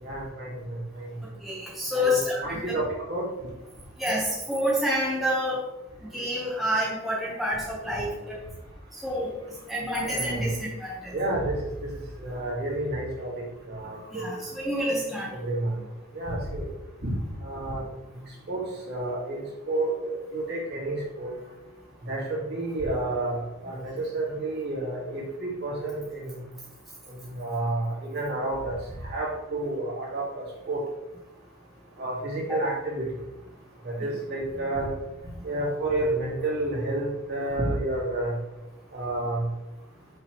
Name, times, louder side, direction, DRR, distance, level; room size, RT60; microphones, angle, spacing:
voice 1, 0.0-0.6 1.0-1.1 1.9-3.2 10.0-10.5 11.1-11.9 12.2-13.3 13.7-14.3 15.4-15.7 16.1-16.7 17.0-17.1 17.4-17.8 18.5-18.6 18.9-19.9 20.3-21.3 22.1-26.4 27.3-28.8 29.1-30.8 32.0-33.0 33.8-34.9 35.4-38.3 38.9-39.5, right 2 dB, 50° right, -4 dB, 2.0 m, -30 dB
voice 2, 1.4-2.8 4.0-5.6 6.0-8.4 8.9-9.4 9.7-11.2 14.1-15.3 32.5-32.6, left 1 dB, ahead, -6 dB, 1.1 m, -28 dB
6.2 x 5.5 x 3.1 m, 0.96 s
head